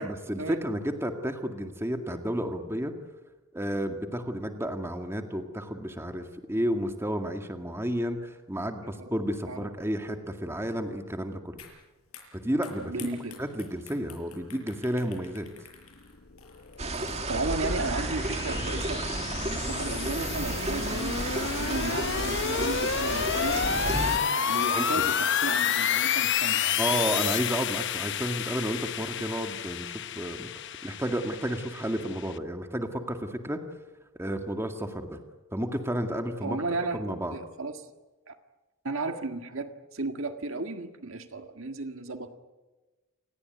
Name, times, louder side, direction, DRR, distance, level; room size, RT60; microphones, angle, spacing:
voice 1, 0.0-2.9 3.5-11.6 12.3-13.1 13.4-15.5 24.7-25.0 26.8-30.5 30.8-33.6 34.2-35.2 35.5-36.6 36.9-37.4, equal, 10° right, 5 dB, 2.0 m, -31 dB
sound 1, 11.6-11.8 12.1-17.4, left 7 dB, 75° left, 7.4 m, -49 dB
voice 2, 12.9-13.4 17.3-19.1 19.5-24.0 24.5-26.8 36.4-37.9 38.3-38.4 38.8-42.3, right 3 dB, 60° right, 7 dB, 1.7 m, -34 dB
sound 2, 16.3-32.4, left 8 dB, 55° left, 0.9 m, -30 dB
sound 3, 16.8-24.2, right 2 dB, 30° right, 2.2 m, -32 dB
29.0 x 18.5 x 9.4 m, 1.2 s
head